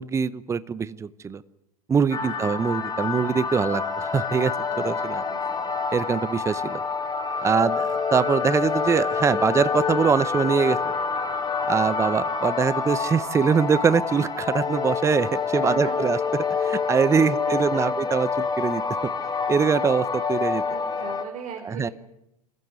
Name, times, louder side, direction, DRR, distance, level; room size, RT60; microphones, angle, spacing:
voice 1, 0.0-1.4 1.9-5.2 5.9-6.8 7.4-10.9 11.7-16.2 16.5-18.8 19.5-20.6 21.7-21.9, right 6 dB, 15° right, 17 dB, 0.8 m, -23 dB
sound 1, 2.1-21.3, left 5 dB, 20° left, 2.8 m, -27 dB
voice 2, 2.1-2.5 4.7-5.6 7.6-7.8 15.3-15.9 17.1-17.9 20.7-21.9, right 6 dB, 40° right, 4 dB, 3.6 m, -39 dB
26.0 x 15.0 x 9.6 m, 0.85 s
hypercardioid pair, 110°, 19 cm